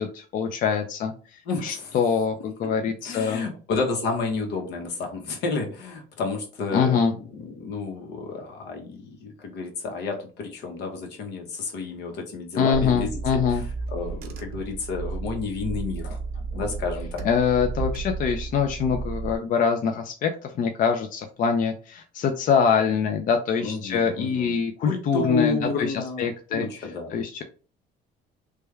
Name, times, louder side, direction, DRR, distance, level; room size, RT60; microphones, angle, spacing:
voice 1, 0.0-3.5 6.7-7.1 12.6-13.6 17.2-26.7 27.1-27.4, left 6 dB, 55° left, 5 dB, 0.5 m, -24 dB
voice 2, 1.5-1.9 2.6-2.7 3.0-13.6 13.9-17.2 23.6-24.6 24.8-27.1, left 4 dB, 80° left, 2 dB, 1.1 m, -31 dB
Car / Engine, 12.7-19.4, right 4 dB, 65° right, 0.7 m, -33 dB
3.2 x 2.2 x 3.3 m, 0.37 s
cardioid pair, 110°, 17 cm